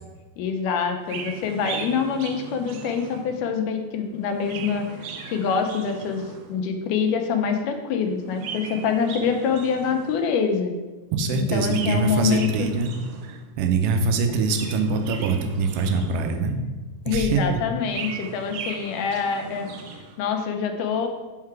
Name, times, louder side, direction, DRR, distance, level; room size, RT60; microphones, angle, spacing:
voice 1, 0.4-6.2 6.5-10.7 11.3-12.7 17.1-19.7 20.2-21.1, left 6 dB, 80° left, 5 dB, 2.2 m, -25 dB
Chirp tweet, 1.0-3.5 4.2-6.6 8.2-10.4 11.6-13.5 14.3-16.6 17.6-20.2, right 5 dB, 75° right, 1.8 m, -38 dB
voice 2, 11.1-12.9 13.2-16.6 17.1-17.4, right 4 dB, 90° right, 6 dB, 2.4 m, -24 dB
5.7 x 5.7 x 4.6 m, 1.2 s
omnidirectional pair, 3.8 m